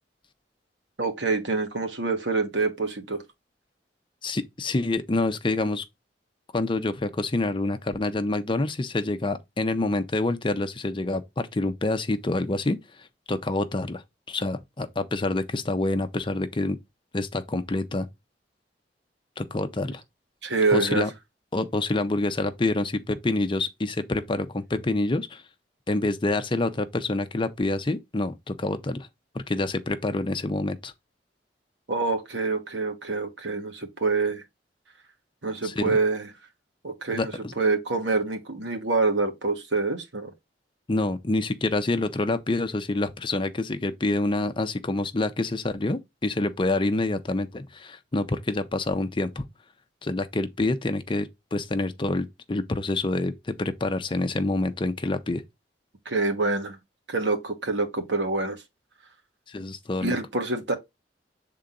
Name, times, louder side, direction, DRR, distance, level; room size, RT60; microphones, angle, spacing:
voice 1, 1.0-3.2 20.4-21.0 31.9-34.4 35.4-36.3 36.8-40.3 56.0-56.8 57.1-58.6 60.0-60.8, right 3 dB, 80° right, 1.4 m, -26 dB
voice 2, 4.2-5.8 6.5-14.0 14.3-16.8 17.1-18.1 19.4-20.0 20.7-21.1 21.5-25.4 25.9-29.1 29.3-30.9 35.6-36.0 37.1-37.5 40.9-49.5 50.0-55.4 59.5-60.1, left 2 dB, 30° left, 0.6 m, -27 dB
7.1 x 3.8 x 3.8 m
head